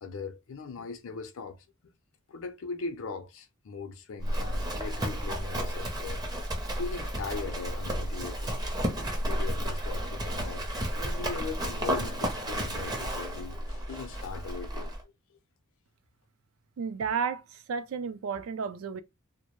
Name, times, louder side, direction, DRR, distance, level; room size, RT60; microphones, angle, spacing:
voice 1, 0.0-1.9 2.3-6.2 6.7-8.7 9.3-15.4, left 4 dB, 65° left, 0.5 m, -40 dB
Livestock farm animals working animals, 4.2-15.0, equal, 20° right, 0.6 m, -32 dB
voice 2, 16.8-19.0, right 6 dB, 70° right, 0.4 m, -32 dB
2.2 x 2.0 x 3.0 m
head